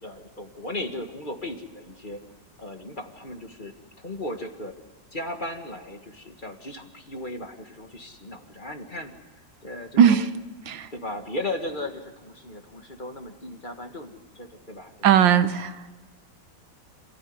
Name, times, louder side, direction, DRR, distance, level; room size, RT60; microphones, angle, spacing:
voice 1, 0.0-2.2 2.6-4.7 5.1-9.1 9.6-10.3 10.9-14.9, left 1 dB, 25° left, 5 dB, 1.8 m, -36 dB
voice 2, 10.0-10.3 10.7-10.9 15.0-15.9, right 8 dB, 90° right, 11 dB, 1.8 m, -18 dB
27.0 x 16.0 x 9.7 m, 1.3 s
omnidirectional pair, 2.0 m